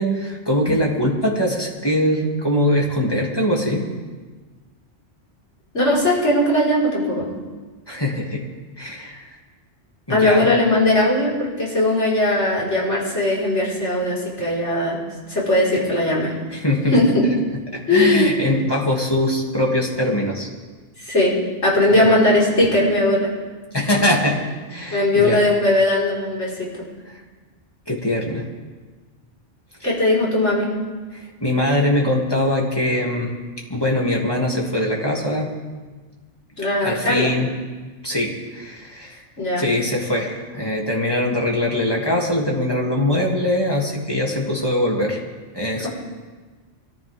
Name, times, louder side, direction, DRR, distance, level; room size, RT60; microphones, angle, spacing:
voice 1, 0.0-3.8 7.9-8.4 8.8-9.4 10.1-10.5 16.5-17.0 17.7-20.5 21.9-22.1 23.7-24.4 24.7-25.4 27.1-27.2 27.9-28.4 29.8-29.9 31.1-33.3 33.7-35.5 36.8-37.5 38.0-39.2 39.6-45.2 45.5-45.9, left 1 dB, 20° left, -3 dB, 2.8 m, -22 dB
voice 2, 5.7-7.3 10.1-15.0 15.3-16.3 16.9-17.3 17.9-18.3 21.0-23.3 24.9-26.7 29.8-30.7 36.6-37.3 39.4-39.7, left 1 dB, 70° left, -5 dB, 5.2 m, -19 dB
23.5 x 14.5 x 3.7 m, 1.3 s
omnidirectional pair, 1.2 m